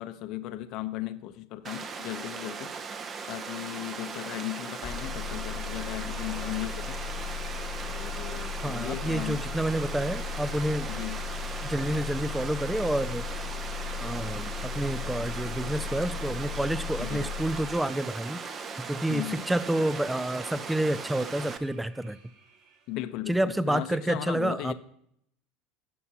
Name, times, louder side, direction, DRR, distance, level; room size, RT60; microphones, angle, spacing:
voice 1, 0.0-2.7 3.3-7.0 7.8-9.4 10.9-11.2 17.0-17.3 19.1-19.6 22.9-24.7, left 14 dB, 60° left, 10 dB, 0.7 m, -36 dB
Water, 1.6-21.6, right 5 dB, 30° right, 0.7 m, -38 dB
sound 1, 4.8-17.8, left 7 dB, 25° left, 0.9 m, -36 dB
sound 2, 5.2-23.0, right 5 dB, 55° right, 3.9 m, -57 dB
voice 2, 8.6-10.9 11.6-13.2 14.0-18.4 18.9-22.2 23.3-24.7, right 1 dB, 5° right, 15 dB, 0.4 m, -29 dB
16.5 x 5.6 x 2.8 m, 0.71 s
supercardioid pair, 115°, 0 cm